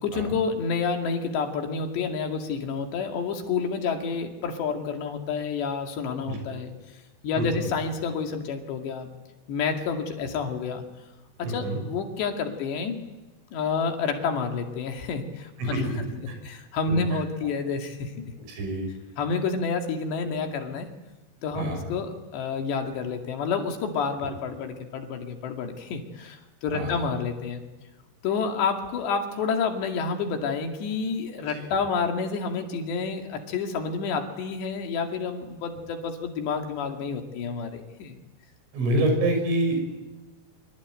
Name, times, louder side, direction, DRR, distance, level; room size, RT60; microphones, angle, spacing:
voice 1, 0.0-6.7 7.2-9.1 9.5-10.8 11.4-13.0 13.5-15.9 16.2-18.3 19.2-20.9 21.4-27.6 28.2-38.2, left 5 dB, 65° left, 4 dB, 4.4 m, -29 dB
voice 2, 7.4-7.7 10.2-10.3 11.5-11.8 15.6-15.8 16.9-17.2 18.5-18.9 21.6-21.8 26.7-27.0 31.5-31.7 38.7-39.8, right 1 dB, 80° right, 5 dB, 8.8 m, -27 dB
26.0 x 25.0 x 9.1 m, 1.1 s
omnidirectional pair, 5.6 m